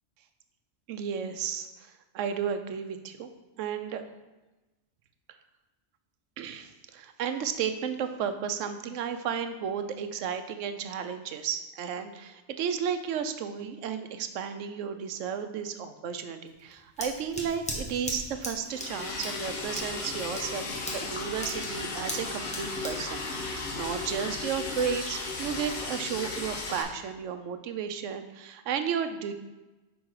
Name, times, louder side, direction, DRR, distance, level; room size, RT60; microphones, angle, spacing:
voice 1, 0.9-3.3 3.6-4.0 6.4-29.3, right 7 dB, 90° right, 9 dB, 1.0 m, -33 dB
Scissors, 16.5-24.2, equal, 5° left, 1.0 m, -40 dB
Liquid, 18.7-26.8, left 3 dB, 60° left, 1.1 m, -35 dB
6.2 x 4.5 x 4.7 m, 1.1 s
omnidirectional pair, 1.2 m